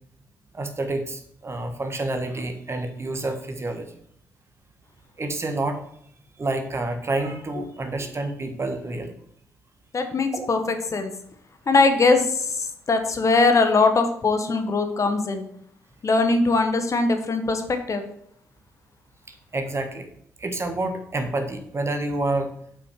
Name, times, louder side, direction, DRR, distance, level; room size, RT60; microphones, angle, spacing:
voice 1, 0.5-3.9 5.2-5.8 6.4-9.1 10.3-10.5 19.3-20.1 20.4-22.5, right 2 dB, 35° right, 6 dB, 1.6 m, -28 dB
voice 2, 9.9-10.6 10.9-11.1 11.7-15.4 16.0-18.0, left 3 dB, 40° left, 7 dB, 1.2 m, -21 dB
7.5 x 5.8 x 4.9 m, 0.67 s
hypercardioid pair, 45°, 8 cm